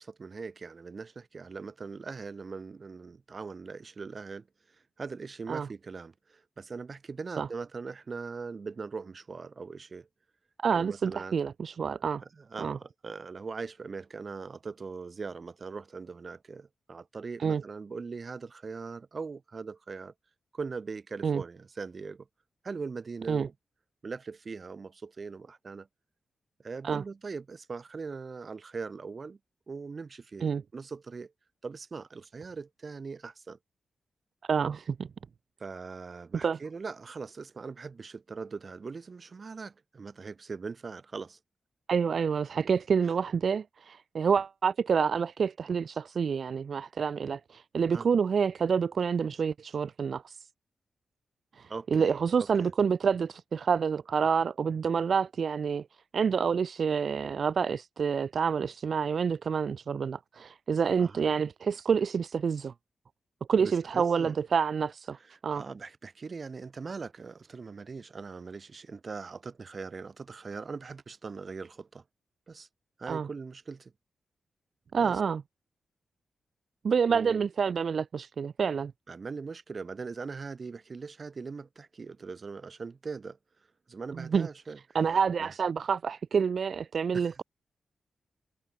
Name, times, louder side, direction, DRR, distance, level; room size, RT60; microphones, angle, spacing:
voice 1, 0.0-10.1 10.7-11.4 12.2-20.1 20.5-22.3 22.6-23.5 24.0-25.9 26.6-29.4 29.7-31.3 31.6-33.6 35.6-41.4 47.9-48.1 51.7-52.7 61.0-61.2 63.6-64.3 65.2-72.0 72.5-72.7 73.0-73.9 75.0-75.2 77.1-77.4 79.1-83.4 83.9-84.8 85.4-85.5 87.1-87.3, right 4 dB, 35° right, 2.7 m, -41 dB
voice 2, 10.6-12.2 12.6-12.8 17.4-17.6 21.2-21.4 23.3-23.5 26.8-27.0 30.4-30.6 34.5-35.1 36.4-36.6 41.9-50.4 51.5-62.7 63.5-65.2 65.4-65.6 73.1-73.3 74.9-75.4 76.8-78.9 84.1-84.5 84.9-87.4, right 6 dB, 55° right, 0.5 m, -28 dB
wide cardioid pair, 150°, 0 cm